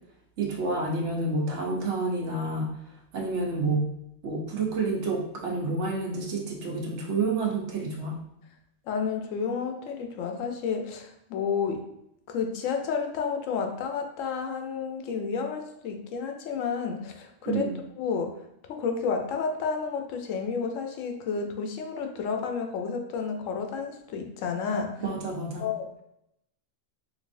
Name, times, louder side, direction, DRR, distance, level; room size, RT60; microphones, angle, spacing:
voice 1, 0.4-2.7 3.1-3.9 4.2-8.2 17.4-17.8 25.0-25.7, right 3 dB, 65° right, -1 dB, 1.0 m, -29 dB
voice 2, 8.9-11.8 12.3-17.6 18.0-18.3 18.7-25.0 25.6-25.9, left 5 dB, 80° left, 4 dB, 0.9 m, -31 dB
4.0 x 2.6 x 2.5 m, 0.81 s
omnidirectional pair, 1.3 m